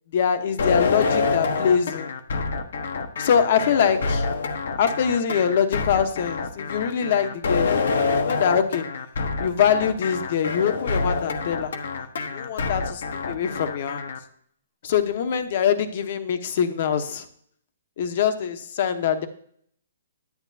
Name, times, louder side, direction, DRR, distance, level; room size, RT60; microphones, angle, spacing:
voice 1, 0.1-2.1 3.2-4.3 4.8-8.8 9.4-11.7 12.3-14.0 14.8-17.2 18.0-19.3, left 7 dB, 50° left, 9 dB, 0.9 m, -23 dB
sound 1, 0.6-14.2, left 4 dB, 75° left, 1.0 m, -26 dB
9.5 x 8.9 x 2.7 m, 0.63 s
hypercardioid pair, 150°, 0 cm